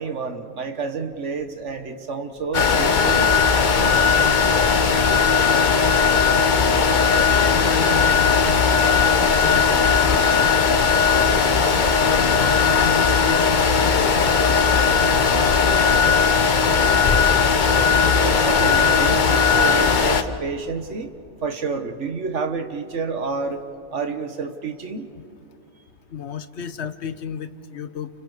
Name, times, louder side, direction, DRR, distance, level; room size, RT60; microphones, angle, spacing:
voice 1, 0.0-3.3 18.1-21.1 21.4-23.6 23.9-25.1, right 4 dB, 85° right, 6 dB, 1.7 m, -29 dB
sound 1, 2.5-20.2, left 5 dB, 45° left, 1.0 m, -18 dB
voice 2, 7.2-9.7 10.0-10.5 12.0-14.7 15.1-15.7 25.1-25.2 26.1-28.1, left 7 dB, 70° left, 12 dB, 1.2 m, -33 dB
29.5 x 29.5 x 5.1 m, 2.6 s
omnidirectional pair, 1.2 m